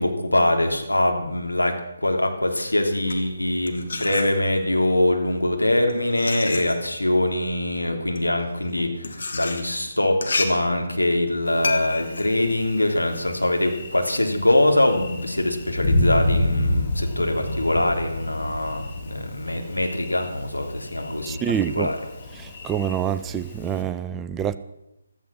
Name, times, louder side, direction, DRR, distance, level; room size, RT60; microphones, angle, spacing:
voice 1, 0.0-1.7 2.0-21.4 21.7-22.0, left 1 dB, 85° left, 3.3 m, -23 dB
sound 1, 2.8-4.8 5.6-13.5, left 3 dB, 60° left, 2.3 m, -32 dB
Thunder, 11.5-23.8, left 1 dB, 30° left, 2.6 m, -30 dB
voice 2, 21.3-21.9 22.4-24.6, right 9 dB, 10° right, 0.5 m, -26 dB
15.5 x 14.0 x 6.1 m
figure-of-eight pair, 145°, 0 cm